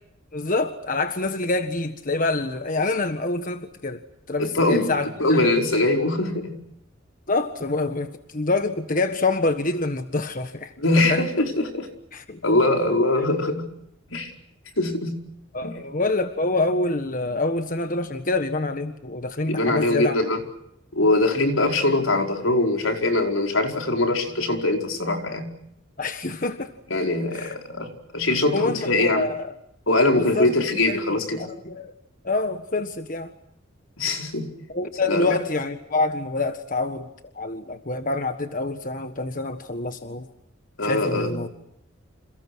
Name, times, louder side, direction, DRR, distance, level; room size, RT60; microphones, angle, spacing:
voice 1, 0.3-4.0 4.3-5.4 7.3-10.7 11.1-11.3 12.1-12.4 15.5-20.2 26.0-26.7 27.3-27.6 28.5-29.5 30.2-30.5 30.9-31.0 31.4-31.9 32.2-33.3 34.7-37.1 37.3-40.3 40.8-41.5, left 2 dB, 40° left, 8 dB, 1.5 m, -26 dB
voice 2, 4.4-4.9 5.2-6.5 10.8-11.9 12.4-13.7 14.1-14.3 14.8-15.2 15.6-15.7 19.5-20.4 20.9-25.5 26.9-29.3 29.9-31.4 34.0-34.5 35.1-35.3 40.8-41.4, left 2 dB, 85° left, 3 dB, 4.9 m, -22 dB
29.0 x 28.5 x 6.3 m, 0.77 s
head